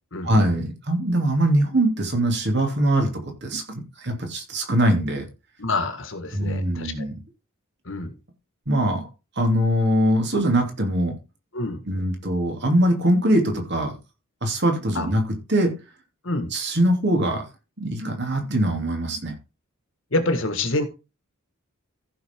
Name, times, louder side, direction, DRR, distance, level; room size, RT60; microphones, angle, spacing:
voice 1, 0.2-3.1 3.4-5.2 6.3-7.1 8.7-9.0 9.4-11.1 11.9-13.9 14.4-15.2 15.5-15.7 16.5-17.4 17.8-19.3, right 1 dB, 55° right, 3 dB, 2.8 m, -22 dB
voice 2, 5.6-7.0 7.8-8.1 11.5-11.9 14.9-15.1 16.2-16.5 20.1-20.9, left 2 dB, 60° left, 8 dB, 1.7 m, -27 dB
14.5 x 5.9 x 3.7 m, 0.29 s
head